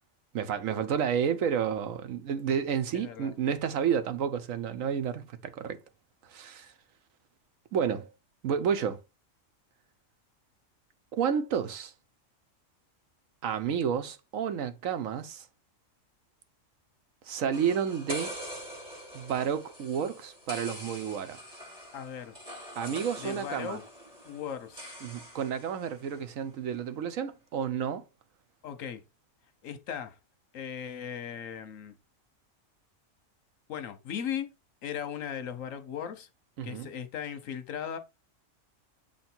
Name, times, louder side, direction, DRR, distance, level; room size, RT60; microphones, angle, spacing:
voice 1, 0.3-5.8 6.3-6.7 7.7-8.1 8.4-9.0 11.1-11.9 13.4-15.5 17.2-18.4 19.1-21.4 22.8-23.8 25.0-28.0 36.6-36.9, right 7 dB, 85° right, 1.2 m, -30 dB
voice 2, 2.9-3.3 21.9-22.4 23.2-23.8 24.2-24.9 28.6-29.0 29.6-30.2 30.5-31.9 33.7-34.5 34.8-36.3 36.6-38.0, left 8 dB, 80° left, 1.2 m, -37 dB
sound 1, 17.5-26.2, equal, 35° right, 4.5 m, -44 dB
7.4 x 3.2 x 4.4 m
omnidirectional pair, 1.3 m